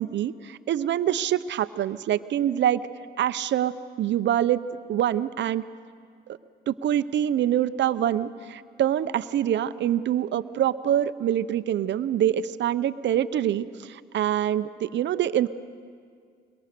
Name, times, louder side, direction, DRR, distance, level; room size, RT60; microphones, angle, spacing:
voice 1, 0.1-2.8 3.2-4.6 4.9-5.6 6.3-6.4 6.7-15.5, right 11 dB, 65° right, 14 dB, 0.7 m, -25 dB
22.5 x 22.0 x 6.8 m, 2.1 s
cardioid pair, 90°, 20 cm